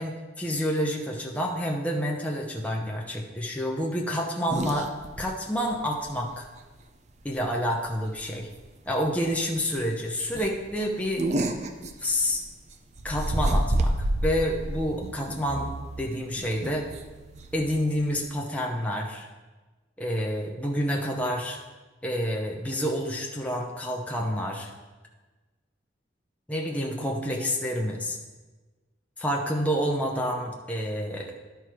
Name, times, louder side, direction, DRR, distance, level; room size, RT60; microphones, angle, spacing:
voice 1, 0.0-4.9 5.2-6.5 7.2-8.5 8.9-11.2 12.0-12.4 13.0-16.9 17.5-19.3 20.0-21.6 22.0-24.7 26.5-28.2 29.2-31.3, equal, 10° left, -1 dB, 0.8 m, -28 dB
sound 1, 4.5-5.2 5.6-5.7 6.1-6.2 7.4-7.7 8.0-8.2 8.7-8.8 9.1-9.2 9.6-9.8 10.3-12.5 13.0-18.3, right 1 dB, 40° right, 0.5 m, -29 dB
11.0 x 4.5 x 4.7 m, 1.2 s
head